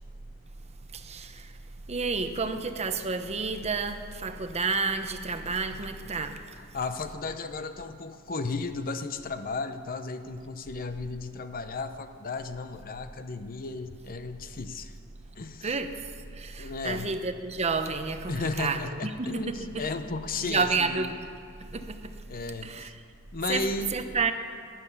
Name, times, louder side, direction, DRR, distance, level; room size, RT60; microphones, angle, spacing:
voice 1, 0.9-1.5 1.9-6.4 15.6-16.1 16.3-19.8 20.4-21.3 21.7-22.1 22.6-22.9 23.5-23.6 23.9-24.3, right 4 dB, 30° right, 8 dB, 0.8 m, -30 dB
voice 2, 6.6-15.0 15.3-15.8 16.6-17.1 18.3-21.1 22.3-22.9 23.3-23.9, left 3 dB, 40° left, 9 dB, 0.7 m, -34 dB
12.5 x 11.5 x 9.6 m, 2.4 s
head